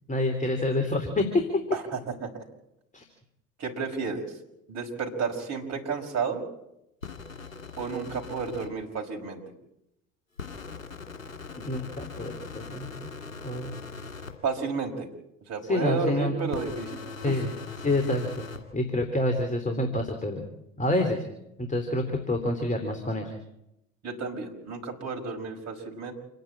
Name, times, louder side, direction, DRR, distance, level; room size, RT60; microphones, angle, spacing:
voice 1, 0.1-1.5 2.9-3.1 11.6-13.1 13.4-13.8 15.6-16.3 17.2-17.5 17.8-18.5 18.7-20.4 20.8-21.2 21.6-23.3, left 1 dB, 20° left, 5 dB, 3.6 m, -27 dB
voice 2, 1.7-2.4 3.6-4.4 4.7-6.4 7.8-9.4 14.4-15.1 15.5-17.4 24.0-26.1, right 5 dB, 40° right, 1 dB, 5.4 m, -32 dB
sound 1, 7.0-8.7 10.4-14.3 16.5-18.6, left 4 dB, 85° left, 2.3 m, -40 dB
28.5 x 10.5 x 8.9 m, 0.85 s
figure-of-eight pair, 65°, 39 cm